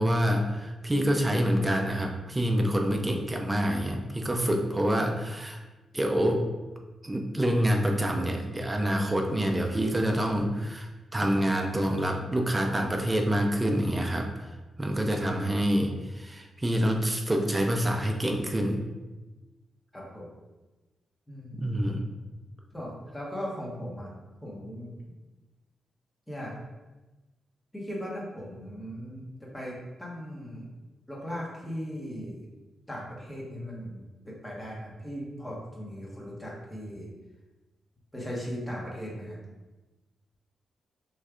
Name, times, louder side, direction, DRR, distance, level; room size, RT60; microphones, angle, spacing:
voice 1, 0.0-5.6 5.9-6.5 7.0-14.5 14.8-18.8 21.6-22.1, equal, 15° right, 2 dB, 0.6 m, -27 dB
voice 2, 19.9-20.3 21.3-21.6 22.7-24.1 24.4-24.9 26.3-26.5 27.7-30.6 31.1-32.4 32.9-37.1 38.1-39.4, equal, 10° left, -4 dB, 1.3 m, -38 dB
6.3 x 3.2 x 2.5 m, 1.1 s
cardioid pair, 105°, 0 cm